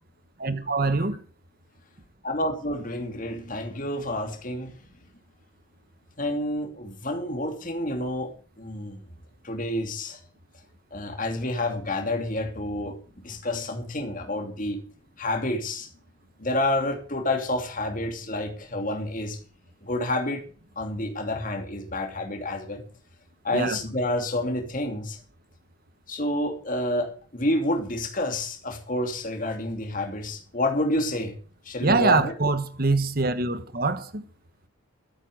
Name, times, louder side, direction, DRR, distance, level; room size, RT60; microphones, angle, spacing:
voice 1, 0.4-1.2 23.5-23.8 31.8-34.2, right 3 dB, 45° right, 1.4 m, -24 dB
voice 2, 2.2-4.7 6.2-8.3 8.6-9.0 9.4-10.2 10.9-14.8 15.2-15.9 16.4-19.4 19.8-20.4 20.8-22.8 23.4-25.2 26.1-31.3 31.6-32.3, left 1 dB, 40° left, 2.7 m, -29 dB
13.0 x 9.2 x 7.8 m
head